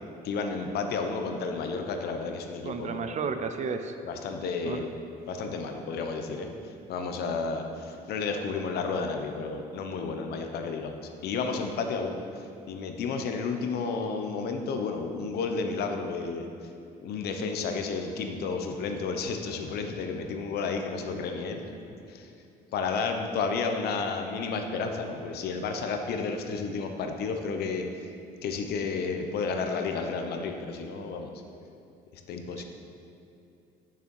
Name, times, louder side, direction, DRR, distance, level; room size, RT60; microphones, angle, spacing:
voice 1, 0.2-3.1 4.0-4.9 5.3-16.5 17.0-21.6 22.1-22.3 22.7-27.9 28.4-31.3 32.3-32.6, left 4 dB, 70° left, 5 dB, 0.9 m, -32 dB
voice 2, 2.6-3.9 4.6-4.9 32.6-32.7, right 5 dB, 45° right, 8 dB, 0.6 m, -32 dB
6.6 x 6.6 x 5.4 m, 2.6 s
cardioid pair, 110°, 17 cm